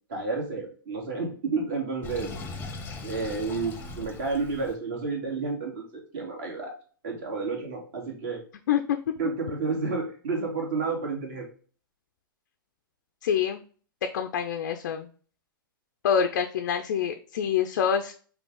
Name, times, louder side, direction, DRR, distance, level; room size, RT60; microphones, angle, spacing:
voice 1, 0.1-2.3 3.0-6.7 7.0-8.4 9.2-11.5, right 4 dB, 45° right, -1 dB, 2.0 m, -31 dB
Sink (filling or washing), 2.0-4.8, left 3 dB, 15° left, 0.8 m, -39 dB
voice 2, 8.7-9.0 13.2-13.6 14.0-15.1 16.0-18.1, left 8 dB, 55° left, 6 dB, 0.5 m, -26 dB
5.3 x 2.4 x 3.6 m, 0.41 s
figure-of-eight pair, 105°, 12 cm